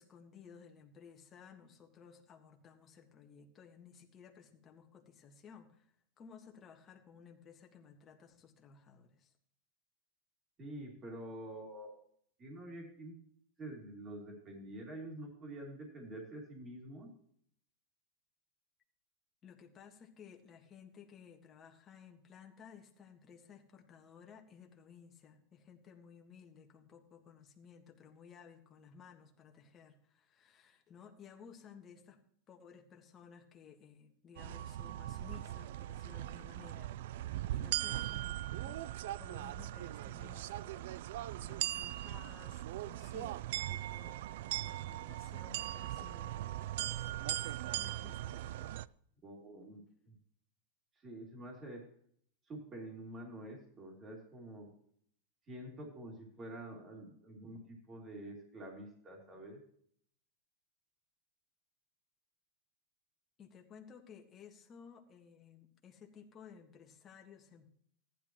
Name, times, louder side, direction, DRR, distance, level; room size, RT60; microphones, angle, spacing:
voice 1, 0.0-5.9 6.2-9.3 19.4-32.2 32.5-41.0 41.4-47.1 47.7-48.8 63.4-67.7, left 7 dB, 25° left, 3 dB, 1.6 m, -57 dB
voice 2, 10.6-11.9 12.4-13.1 13.6-17.1 49.2-50.1 51.0-51.8 52.5-54.7 55.5-59.6, right 1 dB, 25° right, 0 dB, 2.8 m, -47 dB
sound 1, 34.4-48.9, right 14 dB, 70° right, 0.3 m, -40 dB
14.5 x 10.5 x 3.0 m, 0.62 s
supercardioid pair, 145°, 0 cm